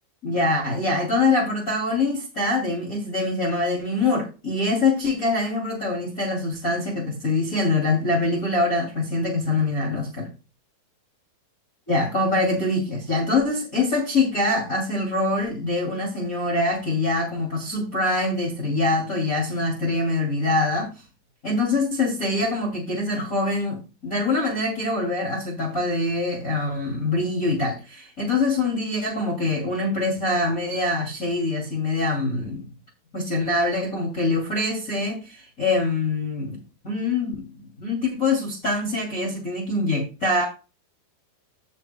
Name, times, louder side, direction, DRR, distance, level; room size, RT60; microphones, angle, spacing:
voice 1, 0.2-10.3 11.9-21.0 21.4-32.6 33.1-40.4, left 2 dB, 25° left, 2.5 m, -24 dB
16.5 x 6.6 x 2.2 m
omnidirectional pair, 4.2 m